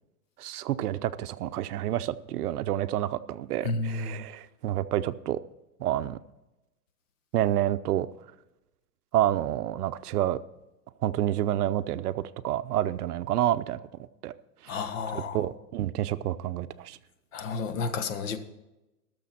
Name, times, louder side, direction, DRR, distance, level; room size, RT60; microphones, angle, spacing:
voice 1, 0.4-5.4 5.8-6.2 7.3-8.1 9.1-10.4 11.0-13.8 14.2-14.3 14.6-14.7 15.1-17.0, right 12 dB, 65° right, 13 dB, 0.7 m, -28 dB
voice 2, 3.6-4.2 14.7-15.4 17.3-18.4, left 4 dB, 50° left, 9 dB, 1.3 m, -31 dB
18.5 x 6.9 x 4.2 m, 0.98 s
hypercardioid pair, 160°, 49 cm